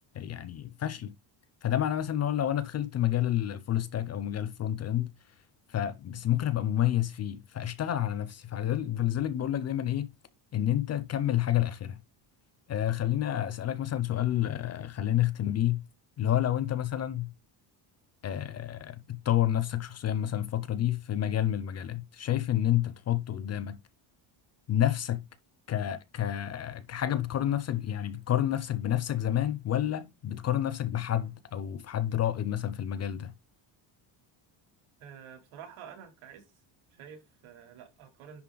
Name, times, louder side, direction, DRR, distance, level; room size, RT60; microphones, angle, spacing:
voice 1, 0.1-1.1 1.6-5.1 5.7-10.1 10.5-12.0 12.7-15.8 16.2-17.3 18.2-23.8 24.7-25.3 25.7-33.3, left 11 dB, 35° left, 0.4 m, -29 dB
voice 2, 35.0-36.4 36.9-38.4, right 8 dB, 85° right, 3.1 m, -48 dB
10.5 x 3.9 x 3.8 m
cardioid pair, 175°, 48 cm